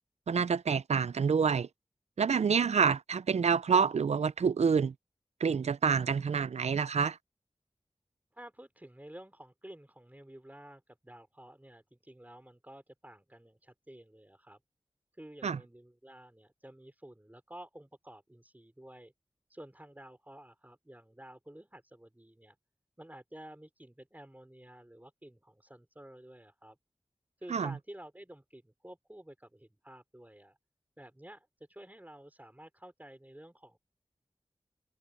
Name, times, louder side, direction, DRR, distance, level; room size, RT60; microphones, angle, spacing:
voice 1, 0.3-1.7 2.2-4.9 5.4-7.2 15.4-15.6 27.5-27.7, right 6 dB, 90° right, 0.4 m, -27 dB
voice 2, 8.3-14.6 15.1-19.1 19.5-22.6 23.0-26.8 27.4-30.6 31.0-33.8, right 1 dB, 15° right, 4.4 m, -51 dB
wide cardioid pair, 55°, 11 cm